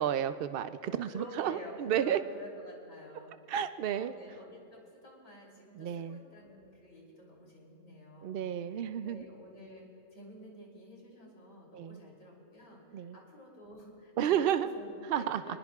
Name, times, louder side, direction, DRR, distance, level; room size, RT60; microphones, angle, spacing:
voice 1, 0.0-2.2 3.5-4.1 5.8-6.2 8.2-9.2 11.7-12.0 12.9-13.2 14.2-14.7 15.1-15.4, right 10 dB, 90° right, 11 dB, 0.5 m, -31 dB
voice 2, 1.1-3.6 3.8-8.4 8.7-15.6, left 1 dB, 60° left, -2 dB, 3.5 m, -50 dB
25.5 x 20.0 x 2.4 m, 2.6 s
omnidirectional pair, 1.5 m